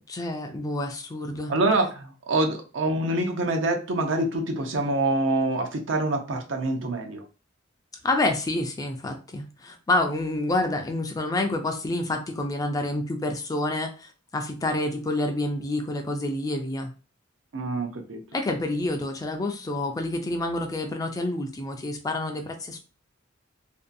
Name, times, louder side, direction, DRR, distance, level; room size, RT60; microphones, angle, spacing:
voice 1, 0.1-1.5 8.0-16.9 18.3-22.8, left 2 dB, 20° left, 4 dB, 0.3 m, -28 dB
voice 2, 1.5-7.2 17.5-18.2, right 2 dB, 70° right, 4 dB, 0.6 m, -25 dB
2.6 x 2.2 x 2.5 m, 0.34 s
head